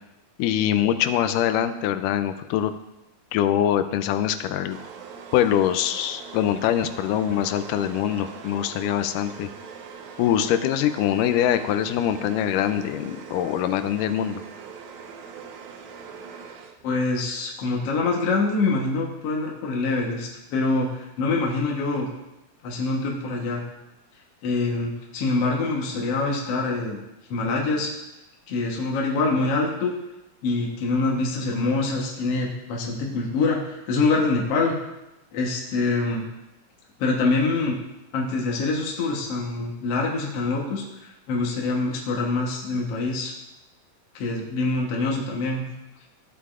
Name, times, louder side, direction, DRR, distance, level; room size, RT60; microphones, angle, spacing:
voice 1, 0.4-2.7 3.3-4.8 5.3-9.5 10.2-14.4, left 10 dB, 90° left, 10 dB, 2.2 m, -23 dB
sound 1, 4.7-17.1, right 6 dB, 75° right, 2.0 m, -42 dB
voice 2, 16.8-22.1 22.6-23.6 24.4-27.0 27.3-27.9 28.5-29.9 30.4-34.8 35.3-36.2 37.0-37.8 38.1-43.3 44.1-45.6, left 3 dB, 60° left, -2 dB, 1.9 m, -25 dB
14.5 x 8.2 x 2.5 m, 0.95 s
omnidirectional pair, 3.6 m